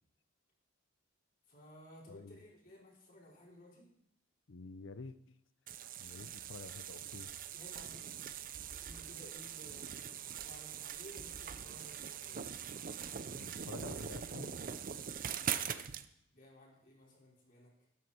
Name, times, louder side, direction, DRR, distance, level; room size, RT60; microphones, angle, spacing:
voice 1, 1.5-3.9 6.1-6.3 7.5-8.5 8.8-12.6 15.3-16.0 16.3-17.7, equal, 50° left, -4 dB, 5.0 m, -57 dB
voice 2, 2.1-2.4 4.5-5.4 6.0-7.3 13.3-14.6, left 3 dB, 70° left, 14 dB, 0.7 m, -49 dB
sound 1, 5.7-16.0, right 8 dB, 45° right, 0.6 m, -42 dB
13.0 x 11.5 x 4.4 m, 0.76 s
head